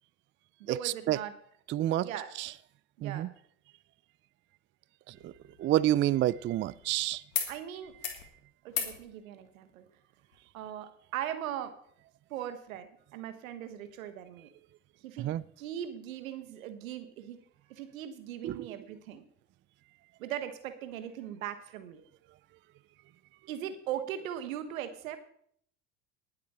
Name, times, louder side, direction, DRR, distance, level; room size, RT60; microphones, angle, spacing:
voice 1, 0.6-1.4 2.0-2.3 3.0-3.3 7.5-8.0 8.6-9.9 10.5-11.8 12.3-14.5 15.0-17.4 17.7-19.2 20.2-22.0 23.5-25.2, right 10 dB, 80° right, 1.4 m, -39 dB
voice 2, 1.7-2.1 2.4-2.5 3.0-3.3 5.2-5.3 5.6-7.2 15.2-15.4 18.4-18.6, right 13 dB, 30° right, 0.4 m, -28 dB
sound 1, 5.1-6.9 7.3-7.5 7.8-8.2 8.7-9.0 10.3-10.4, left 8 dB, 90° left, 1.9 m, -38 dB
19.0 x 7.6 x 4.3 m
hypercardioid pair, 70°, 40 cm